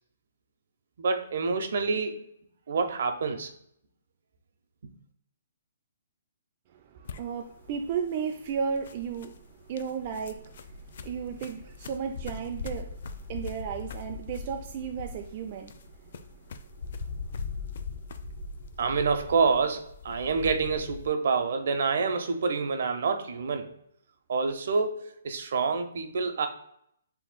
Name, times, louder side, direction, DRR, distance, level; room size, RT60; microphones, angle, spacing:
voice 1, 1.0-2.3 2.7-3.5 4.8-4.9 18.8-23.8 24.3-26.5, right 4 dB, 60° right, 7 dB, 0.7 m, -27 dB
voice 2, 6.7-16.9, right 7 dB, 35° right, 2 dB, 0.4 m, -35 dB
sound 1, 7.0-21.1, left 4 dB, 55° left, 0.4 m, -41 dB
7.4 x 2.9 x 2.2 m, 0.70 s
hypercardioid pair, 165°, 0 cm